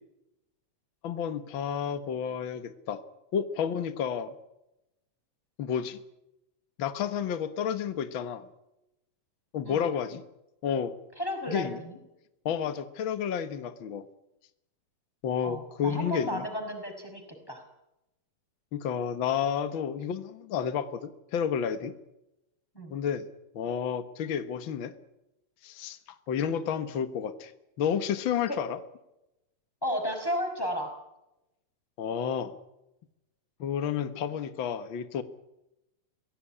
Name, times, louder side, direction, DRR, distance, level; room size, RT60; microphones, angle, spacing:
voice 1, 1.0-3.0 3.3-4.3 5.6-6.0 6.8-8.5 9.5-10.2 10.6-10.9 11.5-11.8 12.4-14.0 15.2-16.4 18.7-21.9 22.9-23.2 23.5-24.9 25.6-26.0 26.3-27.5 27.8-28.8 32.0-32.5 33.6-35.2, left 8 dB, 75° left, 11 dB, 1.1 m, -31 dB
voice 2, 11.2-12.0 15.4-17.6 22.7-22.9 28.4-28.6 29.8-30.9, equal, 5° left, 4 dB, 5.0 m, -33 dB
24.5 x 16.5 x 10.0 m, 0.90 s
omnidirectional pair, 4.1 m